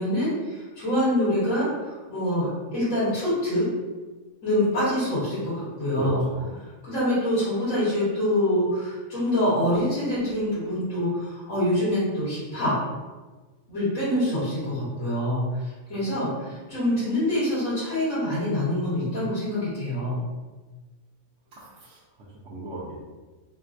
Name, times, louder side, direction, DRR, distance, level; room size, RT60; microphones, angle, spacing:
voice 1, 0.0-2.5 2.7-3.6 4.4-6.2 6.8-12.7 13.7-20.2, left 1 dB, 85° left, -12 dB, 1.9 m, -25 dB
voice 2, 6.0-6.5 21.5-22.0 22.4-23.0, right 2 dB, 65° right, -8 dB, 0.8 m, -34 dB
3.7 x 2.0 x 2.5 m, 1.3 s
omnidirectional pair, 1.4 m